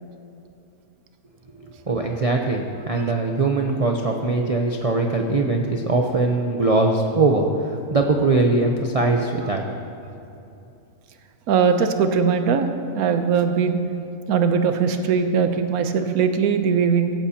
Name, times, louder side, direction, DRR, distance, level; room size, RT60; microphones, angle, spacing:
voice 1, 1.9-9.6, right 3 dB, 35° right, 1 dB, 0.6 m, -21 dB
voice 2, 11.5-12.7 12.9-13.8 14.3-17.1, right 6 dB, 80° right, 7 dB, 1.3 m, -20 dB
16.0 x 15.5 x 2.9 m, 2.7 s
omnidirectional pair, 1.5 m